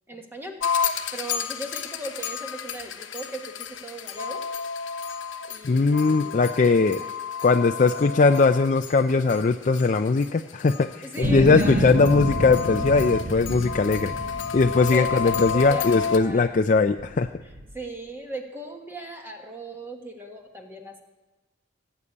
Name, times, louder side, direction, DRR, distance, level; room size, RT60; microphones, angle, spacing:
voice 1, 0.1-0.7 1.1-3.5 3.8-4.4 5.5-6.4 7.0-7.1 11.0-11.9 14.9-16.5 17.4-21.0, right 2 dB, 10° right, 2 dB, 1.4 m, -38 dB
sound 1, 0.6-16.2, left 6 dB, 85° left, 1.0 m, -31 dB
voice 2, 5.6-7.0 7.4-14.1 14.5-17.3, left 4 dB, 40° left, 7 dB, 0.4 m, -20 dB
sound 2, 11.2-16.4 17.0-17.8, right 1 dB, 55° right, 1.4 m, -30 dB
17.5 x 8.3 x 8.5 m, 1.1 s
head